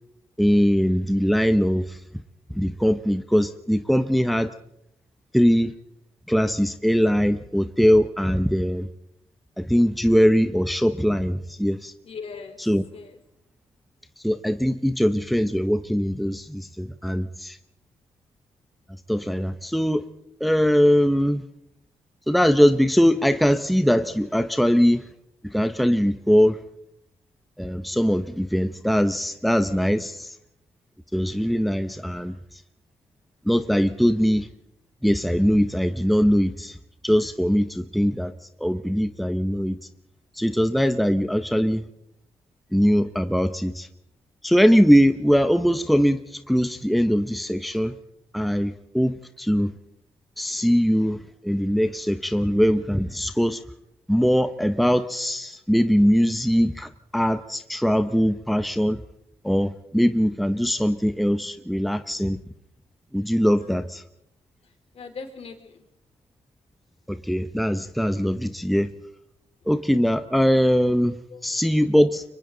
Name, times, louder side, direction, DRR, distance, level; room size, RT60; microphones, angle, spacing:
voice 1, 0.4-2.0 2.5-4.5 5.3-5.7 6.3-8.9 9.6-11.9 12.6-12.8 14.2-17.6 19.1-20.0 20.4-21.4 22.3-25.1 25.5-26.6 27.6-30.3 31.1-32.4 33.5-34.5 35.0-36.8 37.0-38.3 38.6-39.7 40.4-41.9 42.7-43.9 44.4-48.0 48.3-49.7 50.4-53.6 54.1-59.0 59.4-62.4 63.1-64.0 67.1-68.9 69.7-71.1 71.4-72.2, equal, ahead, 10 dB, 0.9 m, -21 dB
voice 2, 12.0-12.6 12.9-13.2 63.6-63.8 64.9-65.8 71.3-71.4, left 5 dB, 60° left, 4 dB, 3.7 m, -39 dB
30.0 x 24.5 x 3.9 m, 0.79 s
cardioid pair, 100°, 11 cm